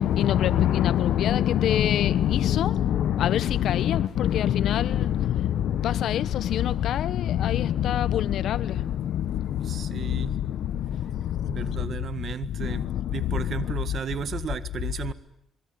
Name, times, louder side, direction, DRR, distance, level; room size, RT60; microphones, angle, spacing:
voice 1, 0.0-14.0, left 11 dB, 75° left, 1.0 m, -25 dB
voice 2, 9.6-10.3 11.4-12.8 13.1-15.1, right 7 dB, 55° right, 1.8 m, -34 dB
25.5 x 22.5 x 9.6 m
cardioid pair, 90°, 0 cm